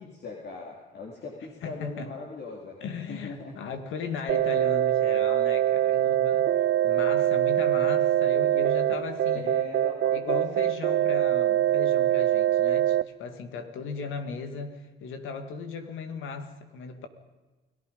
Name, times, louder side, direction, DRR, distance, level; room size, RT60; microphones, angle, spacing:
voice 1, 0.0-2.8 3.1-3.6 9.3-10.4, left 3 dB, 55° left, 3.8 m, -40 dB
voice 2, 1.6-2.1 2.8-9.5 10.1-17.1, left 5 dB, 85° left, 2.3 m, -37 dB
sound 1, 4.3-13.0, right 12 dB, 75° right, 0.7 m, -24 dB
29.5 x 18.5 x 5.4 m
cardioid pair, 90°, 20 cm